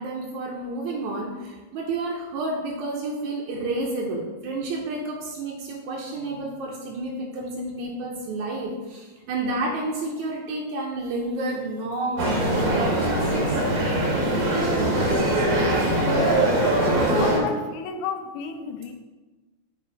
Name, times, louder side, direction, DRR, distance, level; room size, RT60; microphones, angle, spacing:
voice 1, 0.0-13.2, right 2 dB, 75° right, -2 dB, 2.0 m, -30 dB
sound 1, 12.2-17.4, right 1 dB, 60° right, 1.0 m, -22 dB
voice 2, 17.1-18.9, left 6 dB, 80° left, 7 dB, 1.9 m, -31 dB
7.5 x 3.0 x 4.6 m, 1.2 s
omnidirectional pair, 3.5 m